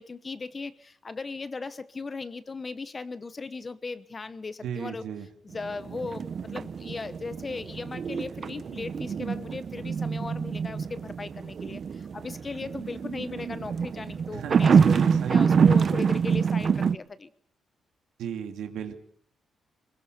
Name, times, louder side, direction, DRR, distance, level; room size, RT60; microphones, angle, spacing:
voice 1, 0.0-5.1 5.4-17.3, left 4 dB, 25° left, 15 dB, 1.0 m, -37 dB
voice 2, 4.6-5.3 14.3-15.8 18.2-19.0, right 8 dB, 90° right, 6 dB, 2.7 m, -35 dB
sound 1, 5.5-17.0, right 6 dB, 45° right, 0.8 m, -26 dB
21.5 x 20.0 x 6.7 m, 0.65 s
cardioid pair, 130°, 0 cm